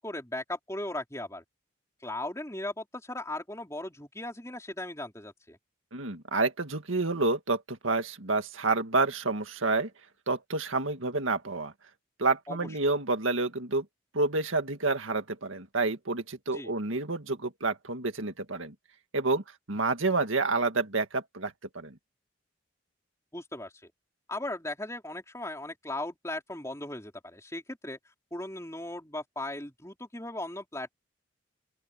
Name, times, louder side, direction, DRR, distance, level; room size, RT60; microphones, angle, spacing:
voice 1, 0.0-1.4 2.0-5.6 12.5-12.6 16.5-16.7 23.3-23.9 24.3-28.0 28.3-30.9, left 1 dB, 15° left, 4.2 m, -37 dB
voice 2, 5.9-9.9 10.3-11.7 12.2-13.8 14.1-18.7 19.1-19.4 19.7-21.9, right 3 dB, 90° right, 2.0 m, -29 dB
open air
head